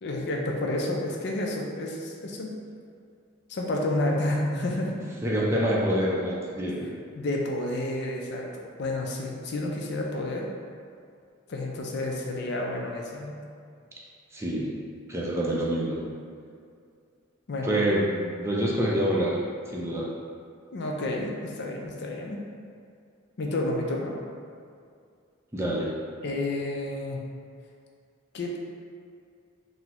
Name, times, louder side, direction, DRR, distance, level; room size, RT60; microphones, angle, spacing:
voice 1, 0.0-2.5 3.5-5.1 7.1-10.4 11.5-13.3 17.5-17.8 20.7-22.4 23.4-24.2 26.2-27.2 28.3-28.6, left 1 dB, 55° left, 0 dB, 0.4 m, -30 dB
voice 2, 5.2-6.9 14.3-14.7 15.1-16.0 17.6-19.4 19.7-20.1 25.5-25.9, equal, 15° right, -5 dB, 0.4 m, -26 dB
3.7 x 2.0 x 2.9 m, 2.3 s
head